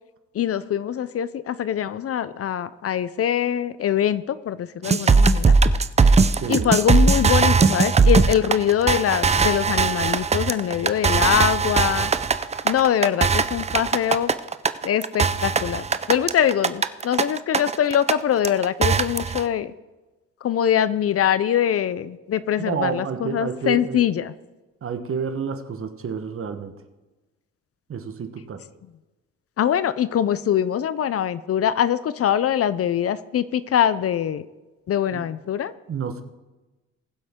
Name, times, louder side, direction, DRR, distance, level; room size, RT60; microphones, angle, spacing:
voice 1, 0.3-5.5 6.5-12.1 12.6-14.3 14.8-19.7 20.4-24.3 29.6-34.4 34.9-35.7, left 9 dB, 50° left, 16 dB, 0.6 m, -23 dB
sound 1, 4.8-18.1 18.4-19.4, right 4 dB, 20° right, 0.5 m, -19 dB
voice 2, 6.4-6.7 22.6-24.0 24.8-26.7 27.9-28.6 35.1-35.2 35.9-36.2, right 6 dB, 45° right, 9 dB, 1.2 m, -29 dB
20.5 x 7.7 x 3.7 m, 1.1 s
cardioid pair, 90°, 30 cm